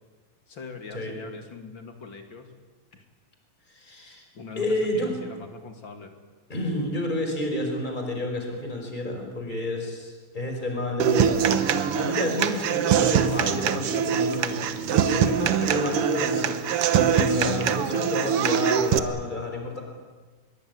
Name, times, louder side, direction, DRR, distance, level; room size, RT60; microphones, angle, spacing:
voice 1, 0.5-2.5 2.9-3.0 4.3-6.1, left 4 dB, 35° left, 5 dB, 2.7 m, -42 dB
voice 2, 3.7-4.2 4.5-5.1 6.5-19.8, left 1 dB, 10° left, 3 dB, 5.0 m, -30 dB
Human voice / Acoustic guitar, 11.0-19.0, right 8 dB, 85° right, 1.2 m, -23 dB
25.0 x 22.0 x 9.6 m, 1.4 s
omnidirectional pair, 4.2 m